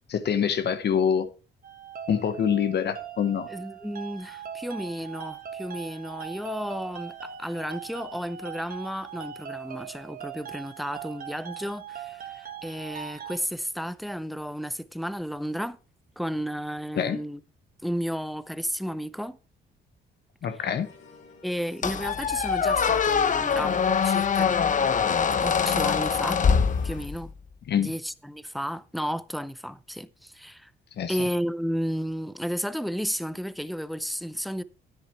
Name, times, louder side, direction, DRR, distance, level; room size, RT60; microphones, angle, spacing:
voice 1, 0.1-1.3 2.1-3.5 16.9-17.2 20.4-20.9 27.7-27.9 31.0-31.2, left 8 dB, 60° left, 1.1 m, -25 dB
sound 1, 1.6-13.4, right 8 dB, 45° right, 1.3 m, -40 dB
voice 2, 3.5-15.8 16.2-17.4 17.8-19.4 21.4-24.6 25.4-26.4 26.8-27.3 27.8-30.7 31.1-34.6, equal, ahead, 0.6 m, -33 dB
sound 2, 20.5-27.1, left 5 dB, 80° left, 3.0 m, -52 dB
Squeak, 21.8-27.3, left 6 dB, 40° left, 0.9 m, -23 dB
10.0 x 8.2 x 4.6 m
cardioid pair, 90°, 20 cm